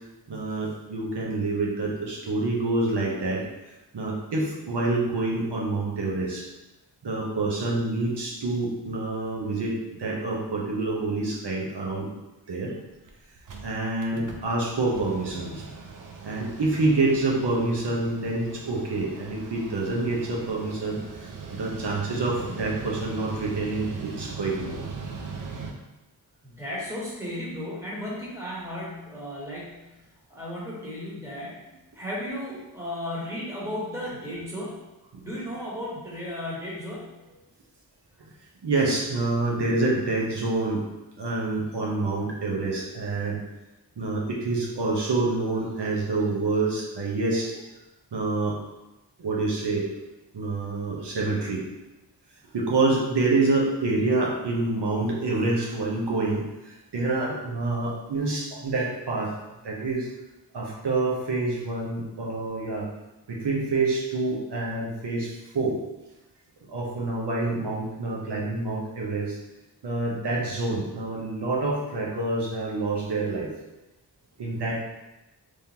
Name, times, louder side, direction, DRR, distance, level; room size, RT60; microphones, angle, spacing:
voice 1, 0.3-3.4 3.9-6.4 7.0-12.1 12.5-12.7 13.6-15.6 16.2-24.8 38.2-38.3 38.6-40.8 41.2-43.4 44.0-47.6 48.1-48.6 49.2-49.9 50.3-51.6 52.5-59.4 59.6-60.1 60.5-62.9 63.3-65.8 66.7-69.4 69.8-73.5 74.4-74.8, right 2 dB, 80° right, -3 dB, 0.9 m, -27 dB
Mechanical fan, 12.7-12.8 13.1-13.2 13.4-25.7, right 5 dB, 50° right, 0.6 m, -40 dB
voice 2, 26.4-30.0 30.3-31.7 31.9-34.8 35.2-37.1, left 1 dB, 5° right, -7 dB, 1.4 m, -35 dB
3.7 x 3.2 x 2.8 m, 1.0 s
wide cardioid pair, 85°, 40 cm